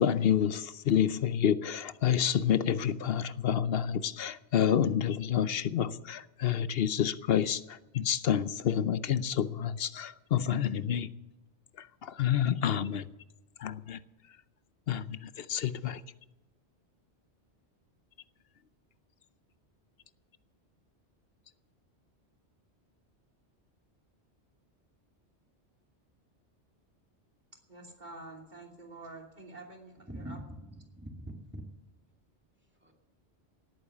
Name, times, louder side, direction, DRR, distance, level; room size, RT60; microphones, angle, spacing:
voice 1, 0.0-11.1 11.8-13.0 13.6-14.0 14.9-16.0, left 9 dB, 65° left, 0.9 m, -29 dB
voice 2, 27.7-30.4, right 2 dB, 40° right, 3.1 m, -48 dB
voice 3, 30.1-30.5 30.8-31.6 32.8-32.9, right 1 dB, 10° right, 2.1 m, -43 dB
18.0 x 8.8 x 7.2 m
omnidirectional pair, 1.2 m